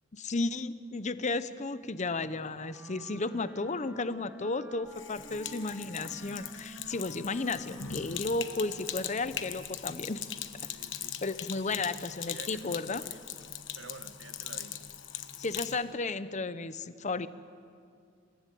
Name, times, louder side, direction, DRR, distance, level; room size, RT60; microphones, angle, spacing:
voice 1, 0.1-10.2 11.2-13.0 15.4-17.3, left 3 dB, 40° left, 13 dB, 0.8 m, -33 dB
Wind instrument woodwind instrument, 2.3-9.7, right 1 dB, 10° right, 2.2 m, -51 dB
Sink (filling or washing), 4.9-15.8, left 9 dB, 75° left, 1.2 m, -40 dB
voice 2, 10.4-11.2 11.8-12.0 12.3-13.2 13.8-14.9, right 3 dB, 80° right, 9 dB, 1.4 m, -50 dB
29.0 x 15.0 x 9.3 m, 2.3 s
head